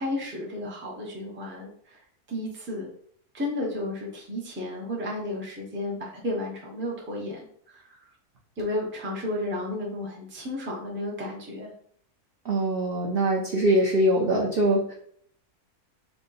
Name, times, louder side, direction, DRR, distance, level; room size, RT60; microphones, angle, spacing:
voice 1, 0.0-2.0 2.3-2.9 3.3-8.1 8.6-11.7, left 1 dB, 10° right, -2 dB, 0.5 m, -33 dB
voice 2, 12.4-14.9, right 1 dB, 55° right, -3 dB, 0.6 m, -23 dB
3.5 x 2.2 x 3.9 m, 0.63 s
omnidirectional pair, 1.7 m